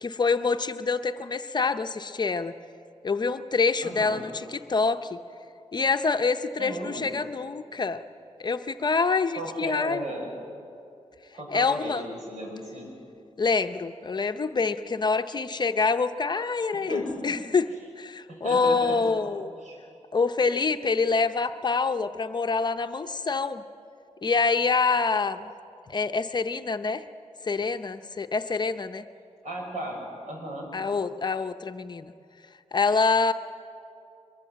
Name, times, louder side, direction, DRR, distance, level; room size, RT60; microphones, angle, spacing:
voice 1, 0.0-2.5 3.0-5.2 5.7-8.0 8.4-10.1 11.5-12.0 13.4-19.5 20.1-23.6 24.2-25.5 25.9-27.0 27.4-29.0 30.7-32.1 32.7-33.3, left 4 dB, 40° left, 8 dB, 0.7 m, -26 dB
voice 2, 3.8-4.2 6.6-7.0 9.3-10.4 11.3-12.9 16.7-17.3 18.3-19.0 19.5-19.8 29.4-30.7, right 1 dB, 85° right, 0 dB, 6.4 m, -35 dB
23.0 x 22.5 x 7.6 m, 2.6 s
wide cardioid pair, 160°, 12 cm